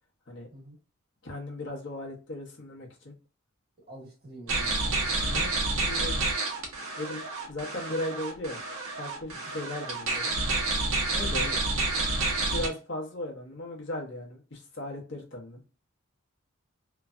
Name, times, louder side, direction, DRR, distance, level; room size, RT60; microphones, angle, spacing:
voice 1, 1.2-3.1 5.3-6.1 7.0-8.6 9.0-10.3 11.1-11.5 12.5-15.6, left 1 dB, 55° left, -1 dB, 0.9 m, -37 dB
voice 2, 3.9-5.5 11.4-11.8, right 1 dB, 45° right, -3 dB, 1.6 m, -47 dB
sound 1, 4.5-12.7, right 3 dB, 75° right, 0.9 m, -29 dB
3.1 x 2.2 x 2.4 m, 0.34 s
head